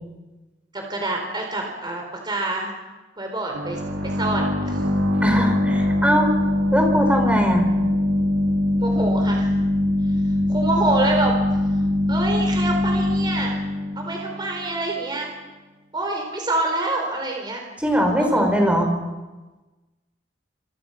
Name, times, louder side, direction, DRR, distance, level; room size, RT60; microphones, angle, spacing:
voice 1, 0.7-2.7 3.2-4.8 8.8-9.5 10.5-11.4 12.1-13.6 14.0-15.3 15.9-17.6 18.2-18.6, right 2 dB, 25° right, 2 dB, 4.3 m, -26 dB
sound 1, 3.5-15.0, left 1 dB, 80° right, 4.9 m, -22 dB
voice 2, 5.2-6.3 6.7-7.7 17.8-18.9, equal, 5° right, 3 dB, 4.3 m, -20 dB
28.0 x 27.5 x 5.9 m, 1.2 s
head